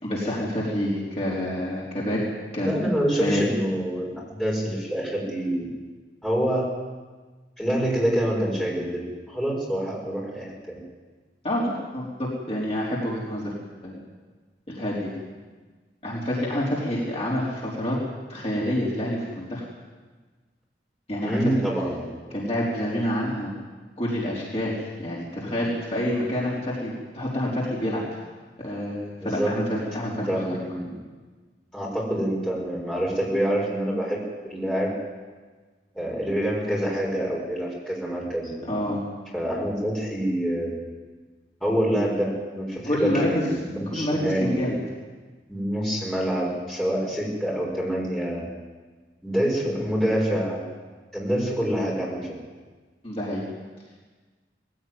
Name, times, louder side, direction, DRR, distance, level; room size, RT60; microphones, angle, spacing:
voice 1, 0.0-2.2 2.5-2.8 3.2-3.4 11.4-13.5 13.8-14.0 14.7-15.1 16.0-18.0 18.3-19.6 21.1-21.4 22.3-23.5 24.0-28.0 28.6-29.6 29.9-30.6 38.7-39.0 42.9-44.8 53.0-53.4, left 1 dB, 35° left, -6 dB, 4.2 m, -27 dB
voice 2, 2.6-5.7 6.2-6.7 7.6-9.0 9.3-10.8 21.2-22.4 29.2-29.5 30.1-30.9 31.7-34.9 35.9-38.9 39.3-40.8 41.6-44.5 45.5-48.4 49.2-50.6 51.1-52.3, equal, 5° left, -5 dB, 6.3 m, -26 dB
20.5 x 16.0 x 9.7 m, 1.4 s
head